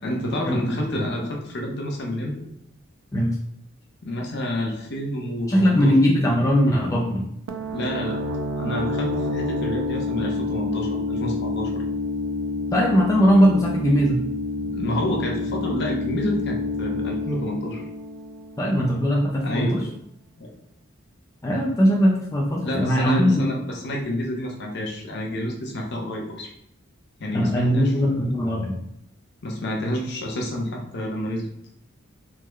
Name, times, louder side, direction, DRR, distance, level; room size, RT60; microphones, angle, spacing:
voice 1, 0.0-2.4 4.0-5.9 7.7-8.2 8.6-11.8 14.7-17.8 19.4-19.9 20.4-20.5 22.6-26.5 27.2-28.2 29.4-31.5, left 1 dB, 55° left, 0 dB, 0.7 m, -29 dB
voice 2, 5.5-7.3 12.7-14.2 18.6-19.8 21.4-23.5 27.3-28.8, equal, 15° left, -2 dB, 0.3 m, -20 dB
sound 1, 7.5-19.0, left 2 dB, 75° right, 0.4 m, -28 dB
3.5 x 2.1 x 3.0 m, 0.74 s
head